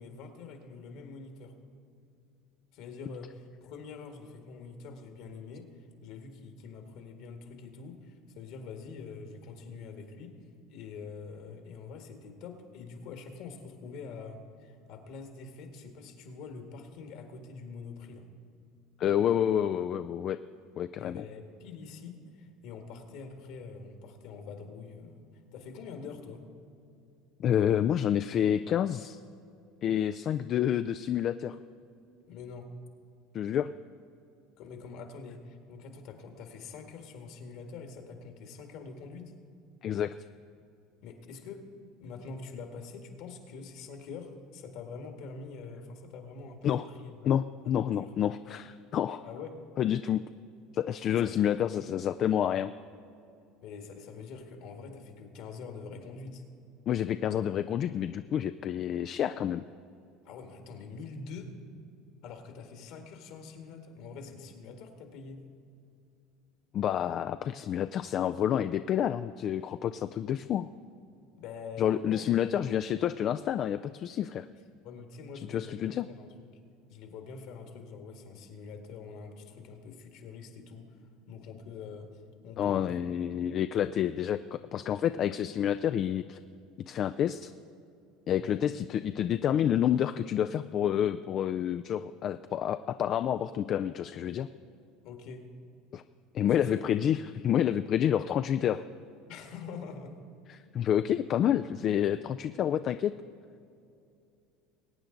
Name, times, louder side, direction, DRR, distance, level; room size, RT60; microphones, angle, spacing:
voice 1, 0.0-1.5 2.7-5.7 6.0-10.4 10.7-18.3 21.0-25.2 25.5-26.4 32.3-32.7 34.6-39.3 41.0-41.6 42.0-47.3 47.6-48.1 49.2-49.6 51.1-51.4 53.6-56.4 60.2-61.5 62.2-65.4 71.4-73.0 74.8-76.5 76.9-80.9 81.3-83.0 83.3-83.5 88.4-88.6 95.0-95.5 96.4-96.8 99.3-100.2, left 5 dB, 65° left, 5 dB, 1.8 m, -45 dB
voice 2, 19.0-20.4 20.8-21.2 27.4-29.2 29.8-31.6 33.3-33.7 39.8-40.1 46.6-46.8 47.3-49.2 49.8-50.2 50.7-52.7 56.9-59.6 66.7-70.7 71.8-74.5 75.5-76.1 82.6-86.4 86.8-87.5 88.3-94.5 95.9-96.0 96.3-98.8 100.5-103.1, left 10 dB, 50° left, 10 dB, 0.3 m, -29 dB
21.5 x 9.0 x 3.9 m, 2.5 s
supercardioid pair, 90°, 0 cm